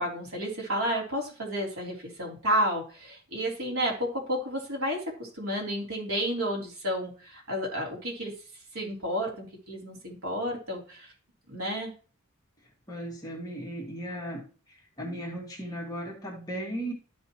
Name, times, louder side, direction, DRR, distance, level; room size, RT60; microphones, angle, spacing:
voice 1, 0.0-8.3 8.7-11.1 11.5-11.9, equal, 80° right, -2 dB, 3.4 m, -31 dB
voice 2, 12.9-14.4 14.7-16.9, right 1 dB, 15° left, -2 dB, 2.1 m, -36 dB
13.0 x 5.4 x 3.0 m, 0.37 s
head